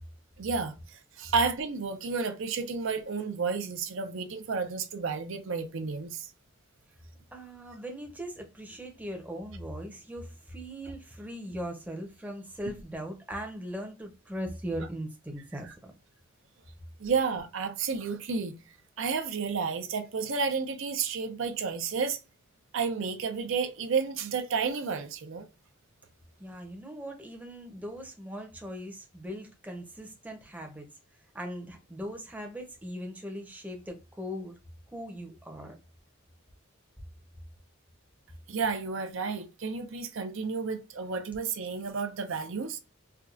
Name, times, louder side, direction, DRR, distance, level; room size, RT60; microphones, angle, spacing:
voice 1, 0.4-6.3 17.0-18.6 19.0-22.2 22.7-25.5 38.5-42.8, right 5 dB, 60° right, 0.5 m, -31 dB
voice 2, 7.3-15.9 26.4-30.9 31.3-34.5 34.9-35.8, equal, 5° right, 0.7 m, -39 dB
4.5 x 2.3 x 2.4 m
head